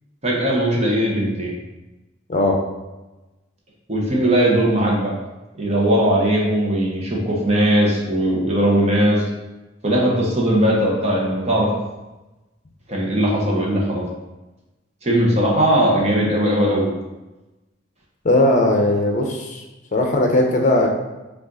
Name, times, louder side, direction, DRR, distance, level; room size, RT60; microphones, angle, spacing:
voice 1, 0.2-1.5 3.9-5.1 5.6-9.2 9.8-11.7 12.9-14.1 15.0-16.9, right 1 dB, 35° right, -3 dB, 0.9 m, -19 dB
voice 2, 18.2-19.6 19.9-20.9, left 1 dB, 40° left, 1 dB, 0.7 m, -18 dB
5.1 x 2.5 x 3.9 m, 1.1 s
head